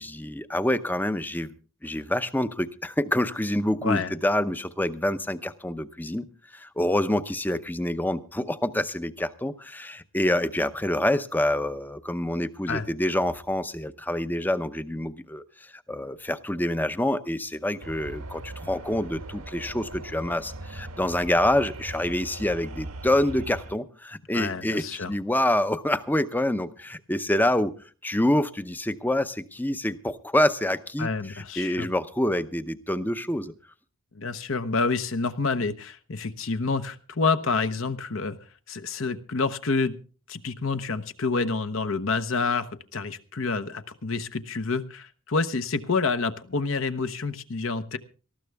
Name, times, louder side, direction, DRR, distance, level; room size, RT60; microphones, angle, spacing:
voice 1, 0.0-1.5 1.8-6.3 6.5-27.7 28.0-33.5, left 1 dB, 10° left, 12 dB, 0.6 m, -27 dB
sound 1, 17.8-23.8, right 1 dB, 85° right, 1.5 m, -40 dB
voice 2, 24.3-25.1 31.0-31.9 34.1-38.4 38.7-39.9 40.3-48.0, left 4 dB, 60° left, 10 dB, 0.9 m, -28 dB
19.0 x 14.5 x 3.5 m, 0.38 s
head